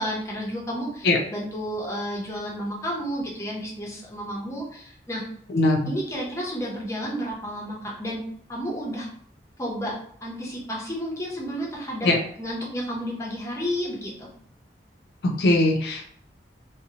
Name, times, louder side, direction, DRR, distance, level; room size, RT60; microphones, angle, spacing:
voice 1, 0.0-5.2 5.9-8.2 8.5-9.1 9.6-12.1 12.4-14.3, equal, 15° left, -2 dB, 0.6 m, -31 dB
voice 2, 5.5-5.9 12.0-12.2 15.2-16.0, left 2 dB, 65° left, 2 dB, 0.4 m, -20 dB
2.7 x 2.0 x 2.7 m, 0.64 s
head